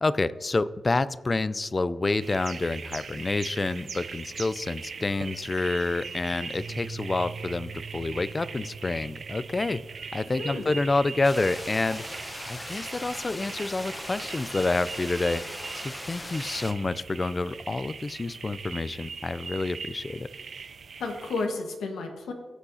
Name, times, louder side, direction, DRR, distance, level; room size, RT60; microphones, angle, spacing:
voice 1, 0.0-9.8 10.1-12.0 12.5-15.4 15.7-20.3, left 3 dB, 30° left, 17 dB, 0.4 m, -28 dB
sound 1, 2.2-21.5, right 5 dB, 60° right, 0.4 m, -41 dB
sound 2, 6.5-14.9, right 5 dB, 15° right, 1.3 m, -45 dB
voice 2, 10.4-10.7 21.0-22.3, left 3 dB, 90° left, 4 dB, 1.3 m, -32 dB
sound 3, 11.2-16.7, left 1 dB, 15° left, 0.8 m, -39 dB
15.5 x 8.0 x 2.7 m, 1.4 s
cardioid pair, 70°, 0 cm